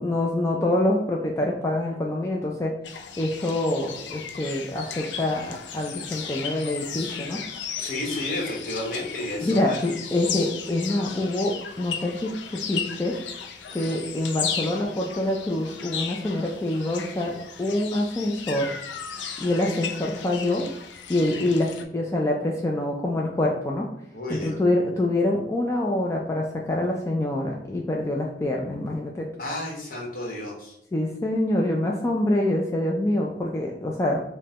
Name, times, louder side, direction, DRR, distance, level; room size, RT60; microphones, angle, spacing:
voice 1, 0.0-2.7 3.2-7.4 9.4-13.2 13.7-18.7 19.4-20.7 21.1-23.9 24.3-29.3 30.9-34.2, left 1 dB, 15° left, -1 dB, 0.3 m, -26 dB
sound 1, 2.8-21.8, left 7 dB, 90° left, 0.4 m, -35 dB
voice 2, 7.8-9.8 24.1-24.6 29.4-30.8, left 1 dB, 55° left, -2 dB, 1.0 m, -31 dB
5.0 x 2.2 x 2.8 m, 0.74 s
head